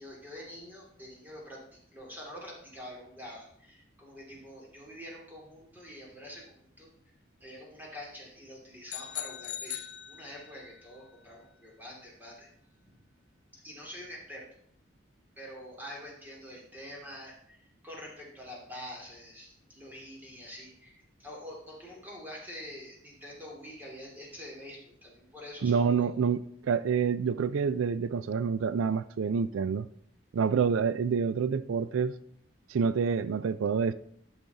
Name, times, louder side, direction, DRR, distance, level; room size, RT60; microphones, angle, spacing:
voice 1, 0.0-6.9 7.4-12.5 12.8-13.0 13.5-14.4 15.4-26.1, equal, 10° right, 2.6 m, -46 dB
sound 1, 8.9-10.7, left 11 dB, 65° left, 0.7 m, -40 dB
voice 2, 25.6-29.9 30.3-32.2 32.7-33.9, right 6 dB, 90° right, 0.4 m, -27 dB
11.5 x 6.2 x 4.0 m
head